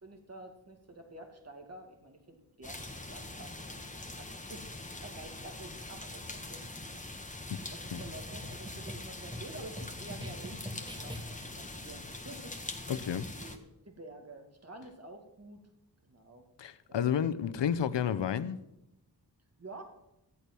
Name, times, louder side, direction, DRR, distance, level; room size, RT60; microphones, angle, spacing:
voice 1, 0.0-3.8 4.2-7.0 7.3-12.9 13.4-15.6 16.1-16.5 16.9-17.4 19.6-19.8, right 2 dB, 35° right, 2.3 m, -50 dB
sound 1, 2.6-13.6, left 2 dB, 20° left, 1.6 m, -43 dB
sound 2, 8.0-11.6, left 1 dB, 10° right, 1.8 m, -45 dB
voice 2, 12.9-13.3 16.6-18.6, left 8 dB, 85° left, 0.7 m, -31 dB
14.0 x 8.4 x 6.1 m
cardioid pair, 55°, 42 cm